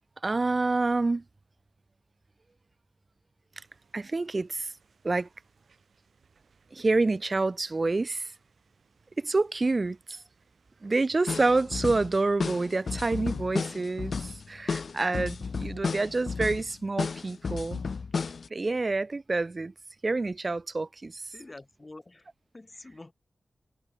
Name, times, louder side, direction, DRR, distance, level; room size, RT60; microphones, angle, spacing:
voice 1, 0.2-1.2 3.9-4.7 5.0-5.3 6.7-8.3 9.2-10.2 10.8-17.8 18.5-19.7 20.0-21.2, right 3 dB, 40° right, 0.9 m, -28 dB
sound 1, 3.5-15.6, right 5 dB, 85° right, 6.6 m, -67 dB
sound 2, 11.3-18.5, left 5 dB, 70° left, 0.5 m, -33 dB
voice 2, 21.3-23.1, left 2 dB, 30° left, 6.8 m, -47 dB
wide cardioid pair, 80°, 0 cm